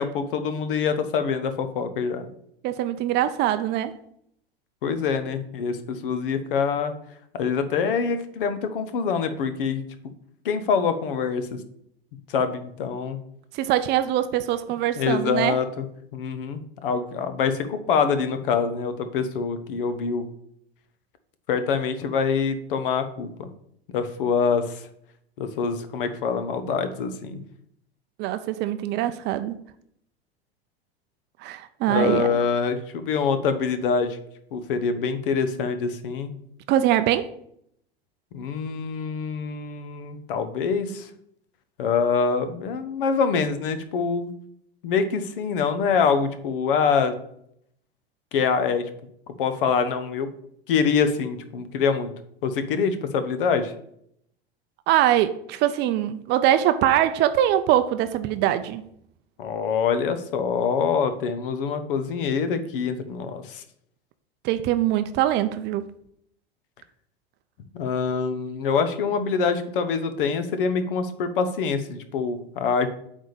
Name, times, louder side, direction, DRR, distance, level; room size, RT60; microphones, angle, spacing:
voice 1, 0.0-2.3 4.8-6.9 7.3-9.8 10.4-11.6 12.3-13.2 15.0-15.8 16.1-20.3 21.5-23.5 23.9-24.8 25.4-27.4 31.9-34.2 34.5-36.3 38.3-41.1 41.8-44.3 44.8-47.2 48.3-48.8 49.4-50.3 50.7-52.1 52.4-53.7 59.4-63.6 67.7-72.9, left 5 dB, 55° left, 10 dB, 1.0 m, -25 dB
voice 2, 2.6-3.9 13.5-15.6 28.2-29.6 31.4-32.3 36.7-37.3 54.9-58.8 64.4-65.9, right 12 dB, 35° right, 11 dB, 0.5 m, -23 dB
8.8 x 3.6 x 6.7 m, 0.71 s
figure-of-eight pair, 85°, 31 cm